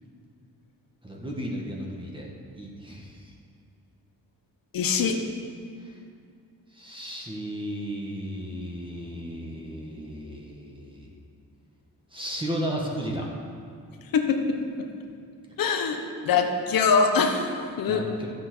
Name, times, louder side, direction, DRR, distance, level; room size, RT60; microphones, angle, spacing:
voice 1, 1.0-2.3 2.5-3.3 5.8-6.0 6.7-11.1 12.1-13.3 17.9-18.3, equal, 15° right, -2 dB, 1.7 m, -34 dB
voice 2, 4.7-5.2 14.1-14.9 15.6-18.0, left 5 dB, 70° left, 5 dB, 1.3 m, -24 dB
12.5 x 7.7 x 6.2 m, 2.3 s
cardioid pair, 115°, 35 cm